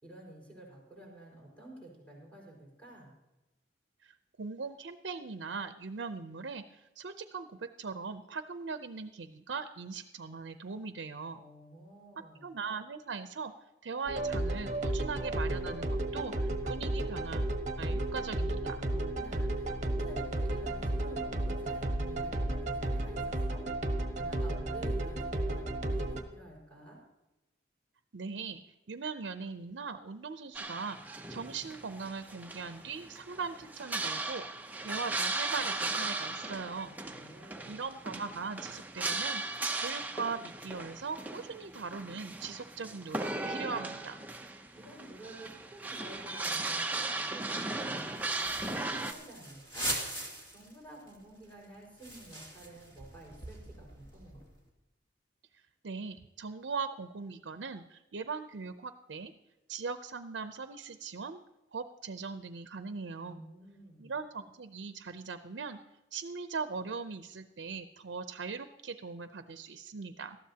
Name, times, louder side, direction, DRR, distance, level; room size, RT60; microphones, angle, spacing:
voice 1, 0.0-3.1 11.3-12.5 18.9-23.6 24.2-27.0 36.7-37.8 44.7-50.1 50.5-54.4 63.3-64.1, right 1 dB, 10° left, -3 dB, 5.0 m, -51 dB
voice 2, 4.0-11.4 12.4-13.5 13.8-17.5 17.8-18.8 28.1-28.6 28.9-36.9 37.6-44.2 55.8-59.3 59.7-61.4 61.7-63.4 64.0-65.8 66.1-70.4, right 5 dB, 85° right, 10 dB, 0.6 m, -40 dB
sound 1, 14.1-26.2, right 1 dB, 40° right, 1.1 m, -33 dB
sound 2, 30.5-49.1, right 2 dB, 10° right, 0.6 m, -37 dB
sound 3, 48.0-50.7 51.1-51.2 51.4-54.6, right 1 dB, 25° left, 2.6 m, -41 dB
19.0 x 13.0 x 2.8 m, 0.98 s
head